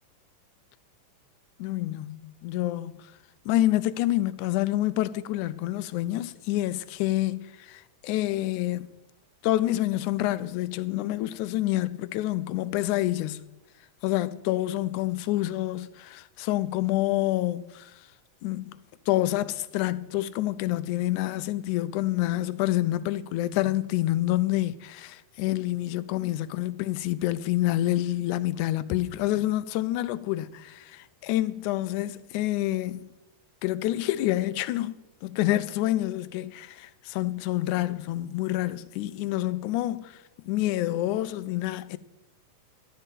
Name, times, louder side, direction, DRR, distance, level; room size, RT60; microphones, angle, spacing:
voice 1, 1.6-3.1 3.5-8.9 9.4-13.4 14.0-17.9 18.4-18.8 19.1-33.1 33.6-42.0, left 15 dB, 85° left, 2.0 m, -28 dB
11.5 x 6.6 x 9.2 m
omnidirectional pair, 3.5 m